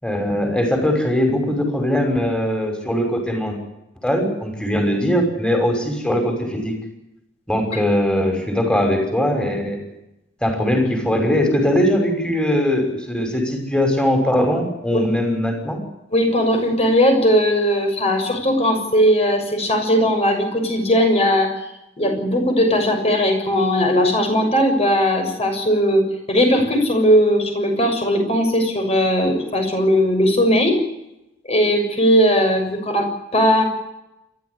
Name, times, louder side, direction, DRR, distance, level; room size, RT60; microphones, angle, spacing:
voice 1, 0.0-3.6 4.0-6.7 7.5-9.8 10.4-15.8, left 1 dB, 5° left, 4 dB, 5.9 m, -20 dB
voice 2, 16.1-21.6 22.0-30.8 31.5-33.6, equal, 35° left, 4 dB, 6.7 m, -18 dB
29.0 x 13.5 x 9.7 m, 0.89 s
head